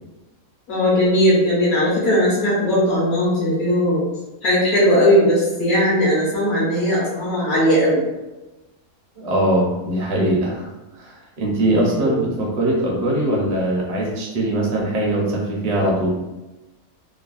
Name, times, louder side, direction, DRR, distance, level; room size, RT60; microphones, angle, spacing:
voice 1, 0.7-4.0 4.4-8.0 11.9-12.2, equal, 80° left, -6 dB, 1.2 m, -18 dB
voice 2, 9.2-10.7 10.9-16.2, right 1 dB, 40° right, -3 dB, 0.5 m, -21 dB
3.2 x 2.1 x 2.4 m, 1.0 s
omnidirectional pair, 1.5 m